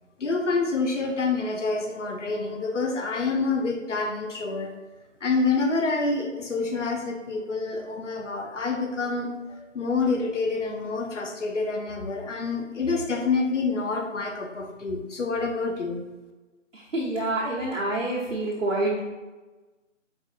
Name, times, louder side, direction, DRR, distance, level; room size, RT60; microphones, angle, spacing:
voice 1, 0.2-4.7 5.2-16.0, left 3 dB, 70° left, 3 dB, 0.7 m, -27 dB
voice 2, 16.9-19.0, right 2 dB, 70° right, -6 dB, 1.0 m, -27 dB
4.5 x 2.7 x 2.5 m, 1.2 s
figure-of-eight pair, 180°, 38 cm